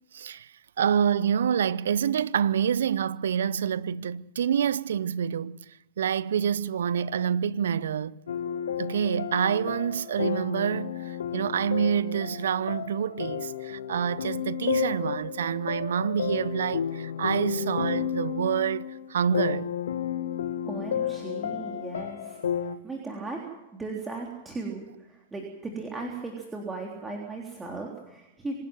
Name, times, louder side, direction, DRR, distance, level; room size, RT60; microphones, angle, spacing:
voice 1, 0.1-5.6 6.0-8.2 8.8-19.7 22.7-22.8, right 8 dB, 70° right, 0.7 m, -27 dB
sound 1, 8.3-22.8, left 9 dB, 75° left, 1.1 m, -32 dB
voice 2, 20.7-23.4 23.7-28.5, right 3 dB, 15° right, 3.5 m, -37 dB
26.0 x 11.5 x 9.2 m
hypercardioid pair, 100°, 0 cm